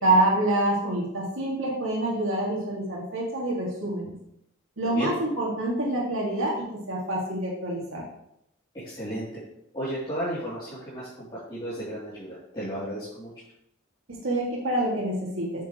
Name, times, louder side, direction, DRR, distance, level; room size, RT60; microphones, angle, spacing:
voice 1, 0.0-4.1 4.8-8.0 14.1-15.6, right 1 dB, 75° right, -3 dB, 2.2 m, -26 dB
voice 2, 8.7-9.3 9.7-13.3, equal, 25° left, -11 dB, 2.8 m, -33 dB
8.4 x 7.3 x 3.0 m, 0.76 s
head